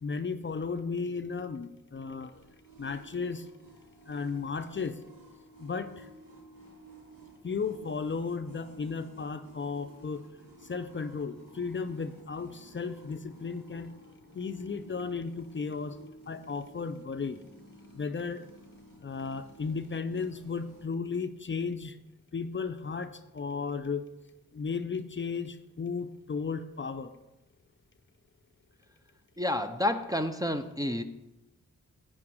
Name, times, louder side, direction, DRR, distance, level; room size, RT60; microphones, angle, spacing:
voice 1, 0.0-2.4 2.8-3.5 4.1-5.0 5.6-6.1 7.4-10.3 10.6-13.9 14.3-16.0 16.3-17.4 17.9-18.5 19.0-22.0 22.3-24.1 24.5-27.1, left 5 dB, 35° left, 10 dB, 0.5 m, -35 dB
sound 1, 2.3-20.8, right 2 dB, 85° right, 2.4 m, -54 dB
voice 2, 29.4-31.0, left 1 dB, 10° right, 5 dB, 0.5 m, -29 dB
8.7 x 4.4 x 6.2 m, 0.95 s
wide cardioid pair, 75°, 33 cm